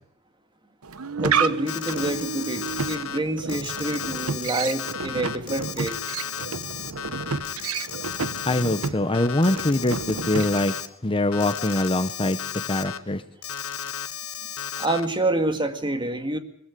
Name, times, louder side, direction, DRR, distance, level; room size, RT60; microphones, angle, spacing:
sound 1, 0.8-10.9, right 5 dB, 75° right, 1.0 m, -30 dB
voice 1, 1.2-6.0 14.8-16.4, right 2 dB, 20° right, 7 dB, 2.1 m, -27 dB
Alarm, 1.7-3.2 3.5-8.9 9.1-10.9 11.3-13.0 13.4-15.1, left 9 dB, 70° left, 1.4 m, -34 dB
voice 2, 8.5-10.7 11.0-12.4 12.7-13.2, left 2 dB, 25° left, 10 dB, 1.0 m, -23 dB
22.0 x 14.5 x 9.8 m, 0.73 s
head